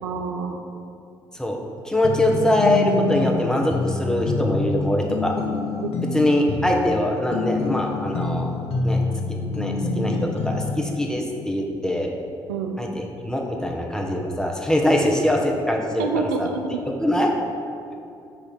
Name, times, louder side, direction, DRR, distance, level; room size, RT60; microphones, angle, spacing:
voice 1, 0.0-0.6 5.8-5.9 12.5-12.8 16.0-16.8, right 5 dB, 80° right, 5 dB, 0.5 m, -27 dB
voice 2, 1.8-5.3 6.1-8.5 8.8-9.0 9.3-12.1 12.8-16.5 16.9-17.3, left 1 dB, 5° left, 0 dB, 1.2 m, -23 dB
sound 1, 2.0-10.9, left 3 dB, 60° left, 0.7 m, -26 dB
7.7 x 3.2 x 6.1 m, 2.6 s
hypercardioid pair, 50°, 11 cm